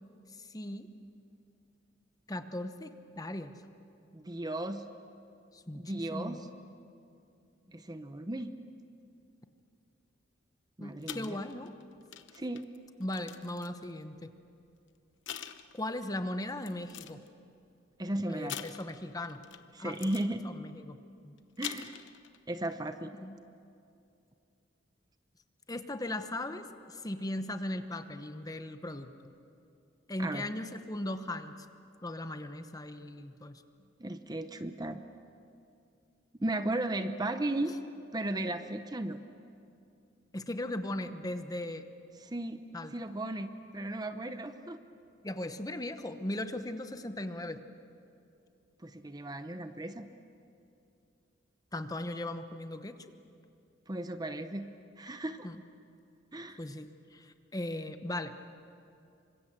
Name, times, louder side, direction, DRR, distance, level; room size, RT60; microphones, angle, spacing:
voice 1, 0.5-0.9 2.3-3.5 5.5-6.5 10.8-11.7 13.0-14.3 15.7-17.2 18.3-19.4 19.8-20.0 20.4-21.0 21.2-21.3 23.2-23.4 25.7-29.1 30.1-31.5 32.0-33.6 40.3-41.8 42.7-42.9 45.2-47.6 51.7-52.9 55.4-55.6 56.6-58.4, left 1 dB, 20° left, 8 dB, 1.0 m, -38 dB
voice 2, 4.1-4.8 5.7-6.4 7.7-8.5 10.8-11.4 12.3-12.6 18.0-18.6 19.7-20.5 21.6-22.0 22.5-23.1 30.2-30.5 34.0-35.0 36.4-37.7 38.1-39.2 42.2-42.6 42.9-44.8 48.8-50.1 53.9-54.7 55.0-55.5 56.3-56.6, right 1 dB, 20° right, 9 dB, 0.8 m, -35 dB
sound 1, 11.0-13.9 14.7-14.8 15.3-16.1 16.6-17.3 18.5-19.6 19.9-20.3 21.4-22.4 22.7-22.9, left 9 dB, 70° left, 1.0 m, -44 dB
27.5 x 24.5 x 7.6 m, 2.6 s
head